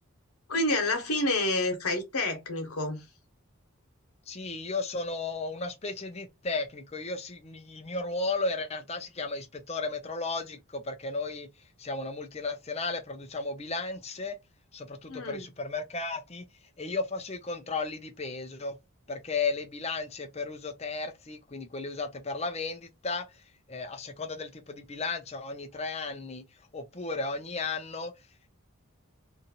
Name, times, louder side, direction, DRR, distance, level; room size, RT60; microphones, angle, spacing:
voice 1, 0.5-3.0 15.1-15.4, left 2 dB, 80° left, 1.1 m, -28 dB
voice 2, 4.3-11.5 11.8-14.4 14.7-16.5 16.8-18.8 19.1-23.4 23.7-26.4 26.7-28.1, left 3 dB, 30° left, 0.5 m, -34 dB
2.8 x 2.5 x 2.8 m
head